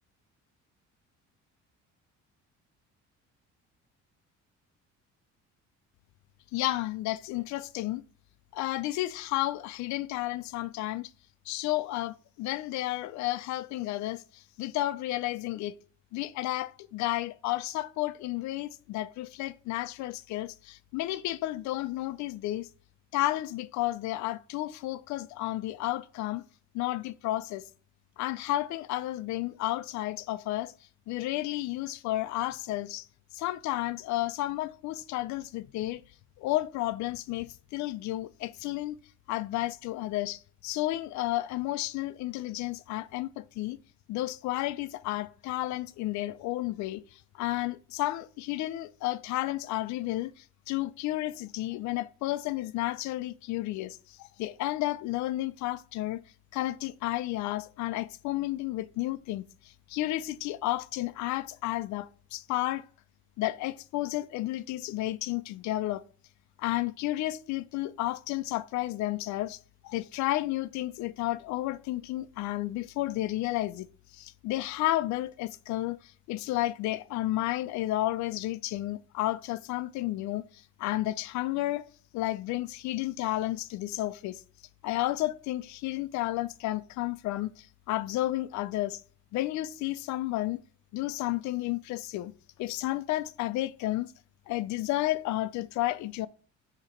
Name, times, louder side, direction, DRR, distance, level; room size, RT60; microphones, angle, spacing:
voice 1, 6.5-8.0 8.5-11.1 11.5-15.8 16.1-22.7 23.1-26.4 26.7-27.6 28.2-30.7 31.1-33.1 33.3-36.0 36.4-39.0 39.3-43.8 44.1-56.2 56.5-62.8 63.4-66.0 66.6-69.6 69.8-73.9 74.1-81.8 82.1-84.4 84.8-89.0 89.3-90.6 90.9-92.3 92.6-94.1 94.5-96.3, left 16 dB, 70° left, 0.5 m, -32 dB
7.3 x 2.9 x 5.0 m
cardioid pair, 155°, 29 cm